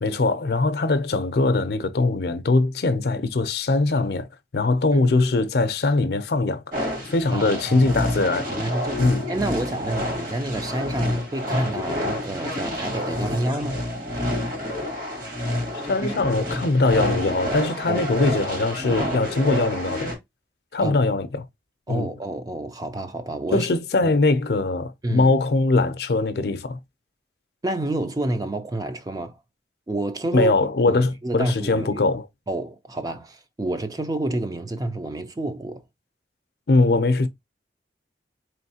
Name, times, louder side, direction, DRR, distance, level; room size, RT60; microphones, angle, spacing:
voice 1, 0.0-4.3 4.5-6.6 7.1-8.5 9.0-9.2 15.9-20.1 20.7-21.4 21.9-22.1 23.5-26.8 30.3-32.3 36.7-37.3, left 3 dB, 60° left, 0.5 m, -21 dB
sound 1, 6.7-20.2, left 1 dB, 50° right, 1.7 m, -28 dB
voice 2, 7.3-8.1 8.5-13.9 17.9-18.0 20.8-21.0 21.9-23.7 24.0-24.1 25.0-25.3 27.6-29.4 29.9-30.5 30.9-32.0 32.5-35.8, right 2 dB, 20° right, 0.4 m, -29 dB
4.1 x 3.1 x 2.8 m
head